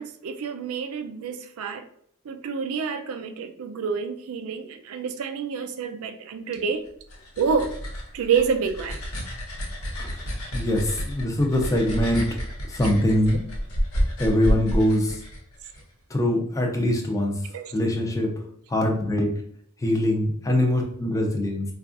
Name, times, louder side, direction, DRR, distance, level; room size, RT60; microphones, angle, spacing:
voice 1, 0.0-1.8 2.3-6.8 7.4-7.7 8.1-9.0 17.5-17.7 20.5-20.6, right 6 dB, 70° right, 0.4 m, -28 dB
sound 1, 6.9-15.8, equal, 85° left, 1.0 m, -30 dB
voice 2, 10.5-12.2 12.7-13.4 14.2-15.2 16.1-17.4 17.7-18.3 18.7-19.3 19.8-21.6, left 1 dB, 15° left, 0.6 m, -23 dB
4.6 x 2.3 x 2.5 m
head